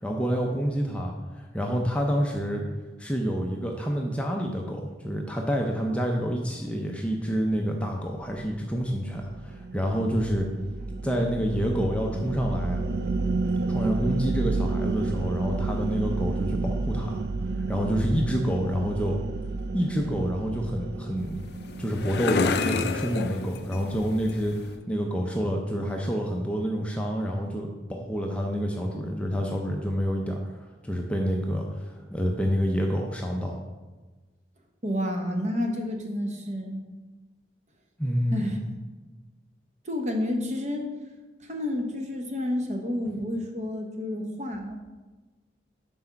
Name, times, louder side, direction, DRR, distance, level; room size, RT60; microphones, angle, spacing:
voice 1, 0.0-2.6 3.0-10.5 11.0-12.8 13.7-17.2 17.7-19.2 19.7-21.4 21.8-33.6 38.0-38.6, equal, 5° left, 1 dB, 0.5 m, -28 dB
sound 1, 8.2-22.7, right 3 dB, 55° right, 0.3 m, -31 dB
sound 2, 21.2-24.8, left 5 dB, 60° left, 0.4 m, -31 dB
voice 2, 34.8-36.8 38.3-38.6 39.8-40.9 41.4-44.7, left 1 dB, 40° right, 3 dB, 0.9 m, -30 dB
6.0 x 4.3 x 5.7 m, 1.2 s
head